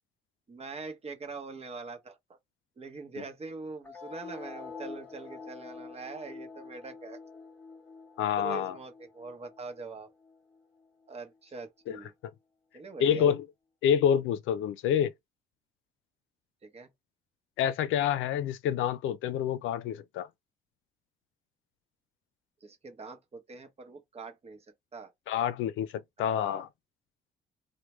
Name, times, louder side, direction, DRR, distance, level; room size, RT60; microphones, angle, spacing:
voice 1, 0.5-2.4 2.8-7.2 8.4-10.1 11.1-12.1 12.7-13.3 16.6-16.9 22.6-24.7 24.9-25.1 26.2-26.6, right 4 dB, 30° right, 0.8 m, -43 dB
sound 1, 3.8-10.8, left 4 dB, 10° left, 0.9 m, -46 dB
voice 2, 8.2-8.7 11.9-12.0 13.0-13.4 13.8-15.1 17.6-20.3 25.3-25.9 26.2-26.7, left 9 dB, 80° left, 0.4 m, -27 dB
3.2 x 2.1 x 3.0 m
cardioid pair, 90°, 20 cm